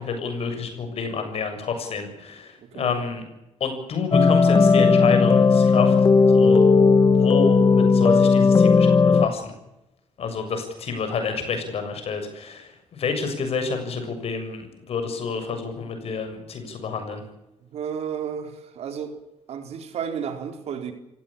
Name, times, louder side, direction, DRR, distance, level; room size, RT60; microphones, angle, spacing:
voice 1, 0.0-3.2 3.6-5.9 6.3-6.6 7.1-9.5 10.2-17.2, left 5 dB, 65° left, 6 dB, 7.1 m, -28 dB
voice 2, 2.6-2.9 17.7-19.2 19.5-20.9, right 7 dB, 75° right, 6 dB, 4.0 m, -32 dB
sound 1, 4.1-9.3, left 4 dB, 35° left, 1.1 m, -16 dB
27.5 x 17.0 x 8.8 m, 0.92 s
cardioid pair, 90°, 11 cm